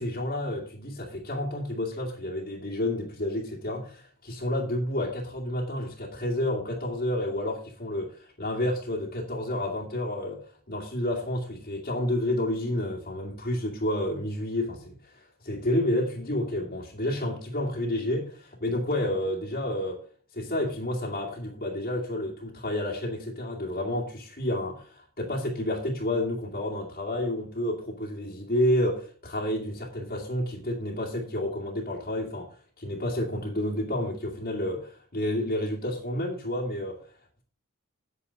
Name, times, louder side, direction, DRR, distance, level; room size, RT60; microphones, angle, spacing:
voice 1, 0.0-10.4 10.7-20.0 20.3-32.5 32.8-37.0, left 1 dB, 45° left, 2.3 m, -30 dB
9.6 x 8.6 x 4.8 m
head